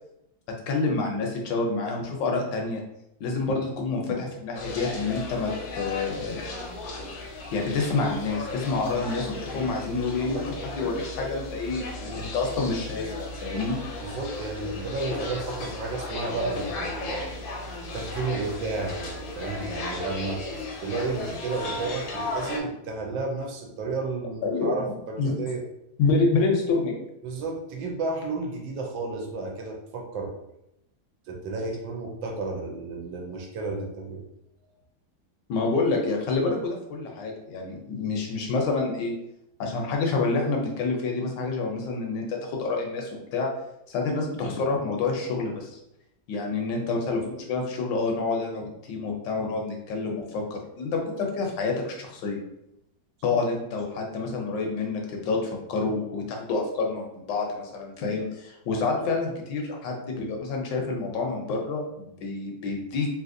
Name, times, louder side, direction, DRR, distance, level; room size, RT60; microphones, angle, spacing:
voice 1, 0.7-2.8 3.2-6.4 7.5-13.8 24.4-24.7 25.2-25.3 26.0-27.0 35.5-39.1 39.6-43.5 43.9-45.8 46.3-52.4 53.2-63.1, left 3 dB, 75° left, 1 dB, 1.2 m, -28 dB
sound 1, 4.5-22.6, left 2 dB, 90° left, 1.4 m, -35 dB
voice 2, 10.2-10.7 12.1-12.3 14.0-17.3 17.9-20.4 20.8-25.6 27.2-30.3 31.3-34.2 46.6-46.7 53.3-53.4 58.7-58.8, right 3 dB, 75° right, 0 dB, 1.4 m, -32 dB
3.4 x 2.8 x 2.5 m, 0.82 s
omnidirectional pair, 2.1 m